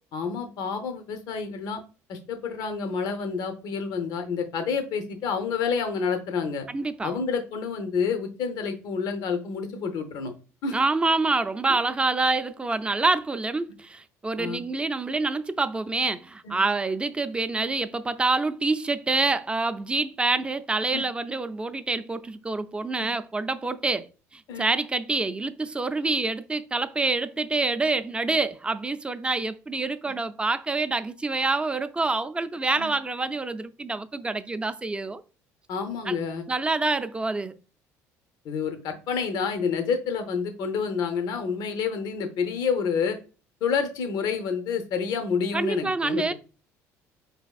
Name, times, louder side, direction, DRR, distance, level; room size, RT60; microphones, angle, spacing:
voice 1, 0.1-1.8 2.1-6.6 7.0-10.3 10.6-10.8 11.7-11.8 14.4-14.6 16.4-16.6 20.9-21.0 23.0-23.1 24.5-24.7 32.8-32.9 35.7-36.5 38.4-43.2 43.6-46.3, left 6 dB, 70° left, 0.6 m, -29 dB
voice 2, 6.7-7.1 10.7-24.1 24.3-35.2 36.1-36.2 36.5-37.5 45.5-46.3, right 3 dB, 15° right, 0.4 m, -27 dB
4.4 x 3.4 x 2.3 m
supercardioid pair, 90°, 7 cm